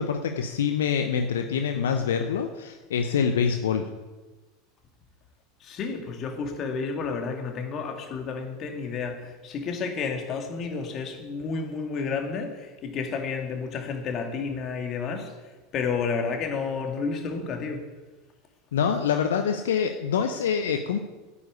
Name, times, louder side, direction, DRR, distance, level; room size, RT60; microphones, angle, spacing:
voice 1, 0.0-3.9 18.7-21.0, left 7 dB, 70° left, 6 dB, 0.8 m, -25 dB
voice 2, 5.6-17.8, left 5 dB, 40° left, 3 dB, 2.4 m, -31 dB
9.7 x 8.6 x 8.0 m, 1.2 s
figure-of-eight pair, 80°, 0 cm